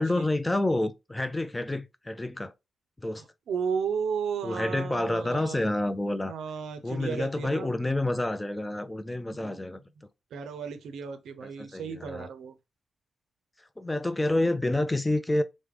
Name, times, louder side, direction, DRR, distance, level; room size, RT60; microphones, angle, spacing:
voice 1, 0.0-2.5 3.0-3.2 4.4-6.3 6.8-9.8 11.4-12.3 13.6-15.4, left 1 dB, 15° left, 0.3 m, -28 dB
voice 2, 3.5-5.6 6.3-7.7 9.3-9.7 10.3-12.5, right 6 dB, 90° right, 0.4 m, -34 dB
3.4 x 2.1 x 3.0 m
cardioid pair, 100°, 0 cm